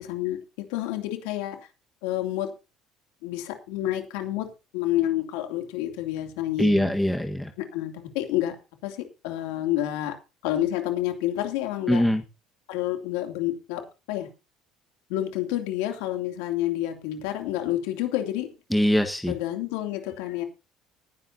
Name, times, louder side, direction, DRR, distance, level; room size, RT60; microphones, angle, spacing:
voice 1, 0.0-1.6 2.0-2.5 3.2-6.9 7.6-8.6 8.8-10.1 10.4-12.0 12.7-13.8 14.1-14.3 15.1-18.5 19.3-20.4, left 13 dB, 85° left, 5 dB, 2.7 m, -29 dB
voice 2, 6.6-7.5 11.9-12.2 18.7-19.3, equal, 5° left, 5 dB, 1.4 m, -22 dB
19.0 x 10.5 x 2.8 m, 0.29 s
supercardioid pair, 85°, 0 cm